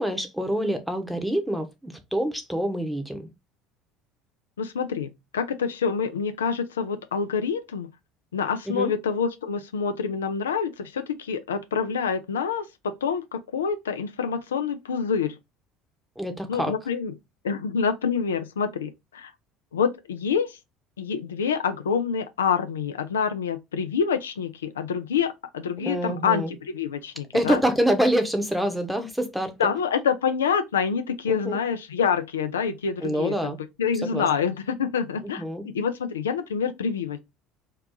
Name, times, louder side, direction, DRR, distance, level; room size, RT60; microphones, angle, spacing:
voice 1, 0.0-3.3 8.7-8.9 16.2-16.7 25.8-26.5 27.3-29.5 31.3-31.6 33.0-33.6 34.0-34.3 35.4-35.6, equal, 5° right, 0.9 m, -26 dB
voice 2, 4.6-7.9 8.3-15.4 16.5-17.1 17.4-19.3 19.7-20.6 21.0-27.6 29.6-37.2, left 6 dB, 90° left, 0.3 m, -27 dB
2.8 x 2.3 x 3.6 m
hypercardioid pair, 70°, 0 cm